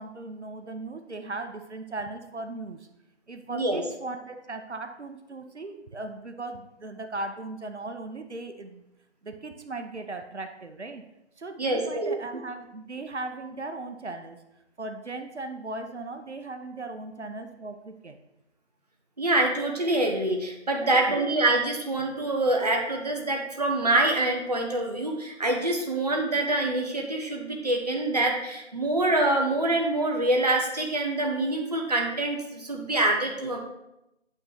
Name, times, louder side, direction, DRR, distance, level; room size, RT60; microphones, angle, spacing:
voice 1, 0.0-2.8 3.3-8.8 9.2-11.0 11.4-14.4 14.8-18.2 20.8-21.2 33.4-33.6, right 2 dB, 70° right, 6 dB, 0.9 m, -38 dB
voice 2, 3.5-3.8 11.6-12.2 19.2-33.6, right 2 dB, 35° right, 1 dB, 0.9 m, -25 dB
8.7 x 3.2 x 5.8 m, 0.89 s
figure-of-eight pair, 165°, 35 cm